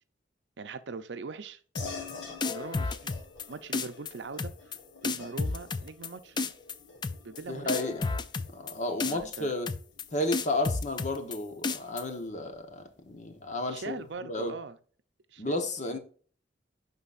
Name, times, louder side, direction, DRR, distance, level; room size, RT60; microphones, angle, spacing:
voice 1, 0.6-1.6 2.5-3.1 3.5-6.4 7.2-7.9 9.1-9.5 13.7-14.8 15.3-15.6 15.9-16.0, right 4 dB, 75° right, 0.6 m, -41 dB
sound 1, 1.7-11.6, left 4 dB, 75° left, 1.6 m, -48 dB
sound 2, 1.7-2.1 2.4-3.4 3.7-4.1 4.4-4.8 5.0-6.1 6.4-6.7 7.0-7.4 7.7-8.7 9.0-9.4 9.7-10.0 10.3-11.4 11.6-12.0, left 4 dB, 25° left, 0.4 m, -31 dB
voice 2, 7.5-8.1 8.5-9.7 10.1-14.0 14.2-14.5 15.4-16.0, left 1 dB, 40° left, 1.0 m, -32 dB
11.0 x 3.9 x 2.5 m
head